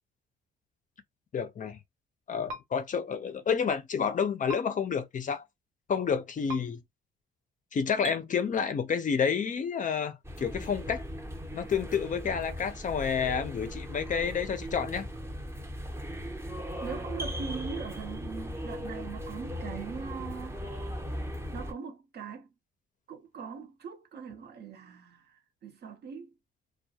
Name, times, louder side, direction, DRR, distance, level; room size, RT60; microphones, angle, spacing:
voice 1, 1.3-1.8 2.3-5.4 5.9-6.8 7.7-11.0 11.5-15.1, left 6 dB, 40° left, 0.5 m, -29 dB
sound 1, 2.5-2.6 4.5-4.6 6.5-6.6 8.0-8.2, right 1 dB, 75° right, 1.1 m, -37 dB
sound 2, 10.2-21.7, equal, 15° right, 0.6 m, -38 dB
voice 2, 16.8-20.6 21.5-22.5 23.1-26.3, right 6 dB, 55° right, 0.8 m, -41 dB
2.2 x 2.1 x 2.7 m
cardioid pair, 90°, 20 cm